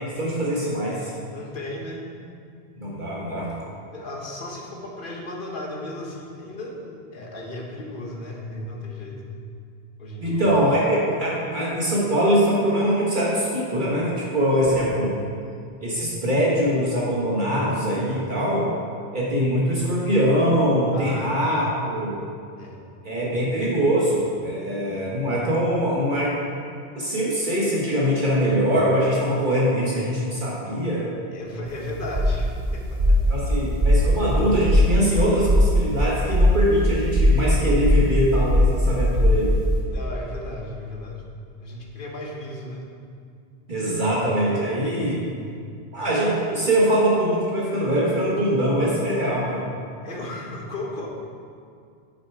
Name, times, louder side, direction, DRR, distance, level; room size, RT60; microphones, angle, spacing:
voice 1, 0.2-1.1 2.8-3.5 10.2-15.1 15.8-18.7 19.1-22.2 23.0-26.3 26.9-31.1 33.3-39.5 43.7-45.2 45.9-49.7, equal, 50° right, -6 dB, 1.6 m, -22 dB
voice 2, 1.3-2.0 3.9-9.5 10.0-10.4 20.9-21.3 22.6-22.8 31.3-33.4 39.9-41.2 41.6-42.8 45.0-45.6 50.0-51.1, left 1 dB, 50° left, -1 dB, 1.4 m, -35 dB
sound 1, 31.7-39.8, equal, 70° right, 2.1 m, -20 dB
8.4 x 6.9 x 4.7 m, 2.3 s
omnidirectional pair, 1.1 m